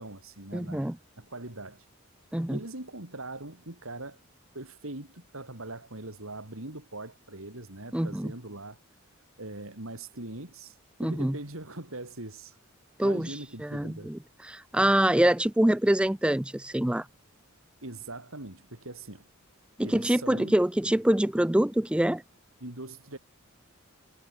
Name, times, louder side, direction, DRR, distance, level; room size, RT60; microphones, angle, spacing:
voice 1, 0.0-1.9 2.5-4.2 4.5-8.8 9.4-12.6 13.0-14.1 17.8-19.2 19.8-20.5 22.6-23.2, right 2 dB, 65° right, 4.1 m, -41 dB
voice 2, 0.5-0.9 2.3-2.6 7.9-8.3 11.0-11.3 13.0-14.2 14.5-17.1 19.8-22.2, right 1 dB, 5° right, 0.4 m, -25 dB
head